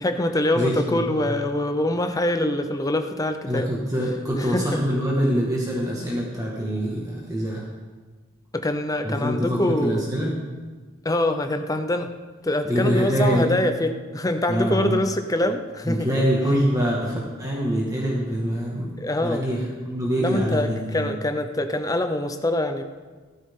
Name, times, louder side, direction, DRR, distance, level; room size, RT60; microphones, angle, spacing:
voice 1, 0.0-3.7 4.4-4.7 8.5-10.0 11.0-12.1 12.4-16.2 19.0-19.5 20.2-22.8, left 1 dB, 20° left, 8 dB, 0.6 m, -24 dB
voice 2, 0.5-1.1 3.5-7.7 9.0-10.3 12.7-13.6 14.5-14.9 15.8-18.9 19.2-21.1, equal, 15° right, -3 dB, 1.7 m, -24 dB
15.5 x 14.0 x 3.7 m, 1.4 s
head